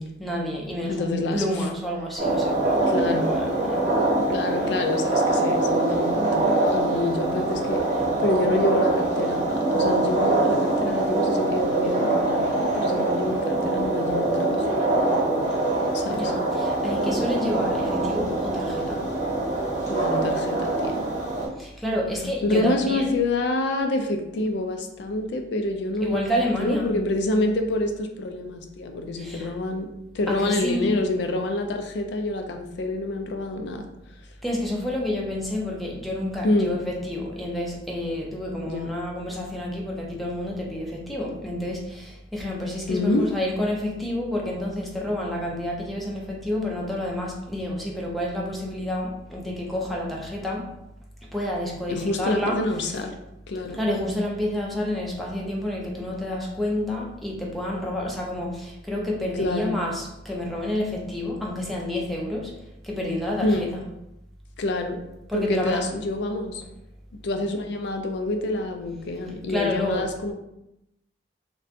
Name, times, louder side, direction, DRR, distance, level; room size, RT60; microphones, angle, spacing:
voice 1, 0.2-3.9 16.2-19.1 21.6-23.2 26.0-27.0 29.2-29.5 30.3-30.9 34.4-50.7 51.2-53.1 53.7-62.5 62.8-63.8 65.3-65.9 69.5-70.1, left 1 dB, ahead, -2 dB, 0.4 m, -29 dB
voice 2, 0.9-1.4 2.9-3.3 4.2-14.7 15.9-16.3 19.9-21.0 22.4-26.3 26.6-29.9 30.1-33.9 36.4-36.8 38.6-38.9 42.9-43.3 51.9-53.2 53.5-53.8 59.3-59.7 63.4-63.7 64.6-65.0 65.3-66.6 67.2-70.3, left 2 dB, 65° left, 5 dB, 0.4 m, -27 dB
sound 1, 2.2-21.5, right 2 dB, 40° right, 0.8 m, -24 dB
2.6 x 2.2 x 2.4 m, 0.87 s
head